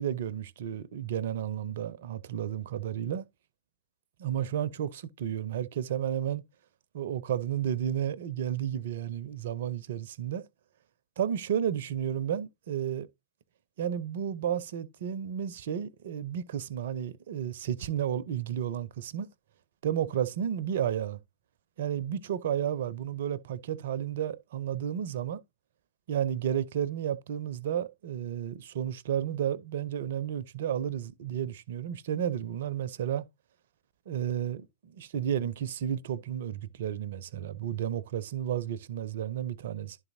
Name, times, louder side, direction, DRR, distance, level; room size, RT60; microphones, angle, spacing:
voice 1, 0.0-3.2 4.2-6.4 6.9-10.4 11.2-13.1 13.8-19.3 19.8-21.2 21.8-25.4 26.1-33.3 34.1-40.0, right 9 dB, 55° right, 0.5 m, -32 dB
11.0 x 4.0 x 2.6 m
figure-of-eight pair, 105°, 0 cm